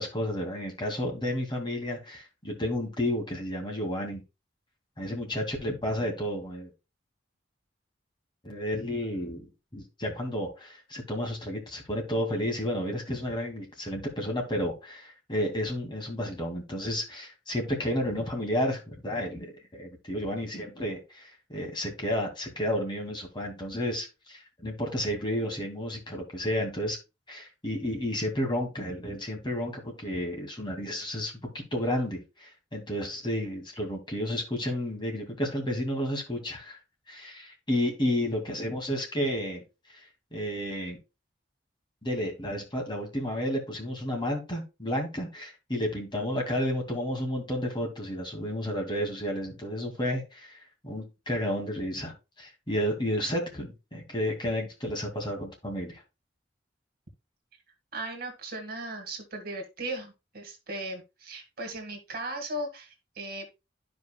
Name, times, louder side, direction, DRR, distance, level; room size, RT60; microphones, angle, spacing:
voice 1, 0.0-4.2 5.0-6.7 8.4-27.0 27.3-36.8 37.1-39.6 40.3-41.0 42.0-50.6 50.8-56.0, equal, 25° left, 1 dB, 2.3 m, -31 dB
voice 2, 57.9-63.5, right 1 dB, 55° right, 4 dB, 1.8 m, -37 dB
12.5 x 5.2 x 2.3 m, 0.26 s
head